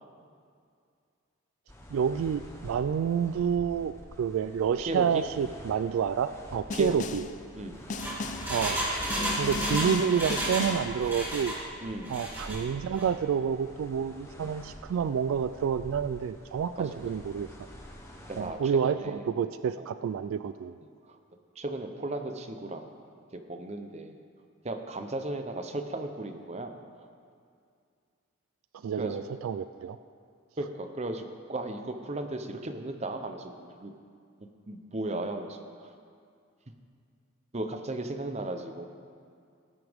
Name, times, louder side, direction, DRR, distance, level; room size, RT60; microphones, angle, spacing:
sound 1, 1.7-18.5, equal, 15° left, 1.1 m, -48 dB
voice 1, 1.9-7.2 8.5-8.8 9.4-11.6 12.1-17.5 18.4-20.8 28.8-30.0, right 7 dB, 80° right, 13 dB, 0.3 m, -29 dB
voice 2, 4.8-5.3 6.7-7.2 7.5-7.8 11.8-12.2 14.4-14.5 16.8-17.0 18.3-19.3 19.8-19.9 21.1-21.2 21.6-22.9 23.3-24.2 24.6-26.8 29.0-29.2 30.6-33.9 34.7-35.9 37.5-38.9, right 2 dB, 30° right, 6 dB, 0.7 m, -36 dB
Snare drum, 6.7-7.4 7.9-8.6 9.1-11.0, left 3 dB, 35° left, 0.4 m, -36 dB
Engine, 7.7-10.7 11.0-11.6 12.0-12.6 12.9-13.0, right 1 dB, 10° right, 2.0 m, -32 dB
17.5 x 9.6 x 3.6 m, 2.3 s
head